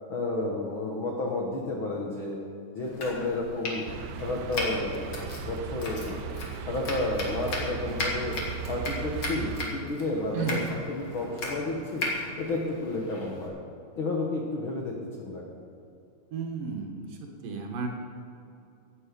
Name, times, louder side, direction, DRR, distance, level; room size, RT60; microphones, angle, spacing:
voice 1, 0.1-2.4 2.7-3.8 4.2-6.3 6.7-8.3 8.7-12.0 12.4-13.5 13.9-15.4, left 2 dB, 70° left, -1 dB, 1.2 m, -31 dB
Domestic sounds home sounds, 2.8-13.5, left 2 dB, 40° left, 2.1 m, -37 dB
sound 1, 3.9-9.7, right 8 dB, 85° right, 2.6 m, -37 dB
voice 2, 16.3-17.1 17.4-17.9, right 5 dB, 70° right, 2 dB, 2.9 m, -32 dB
16.0 x 9.7 x 5.2 m, 2.6 s
omnidirectional pair, 4.4 m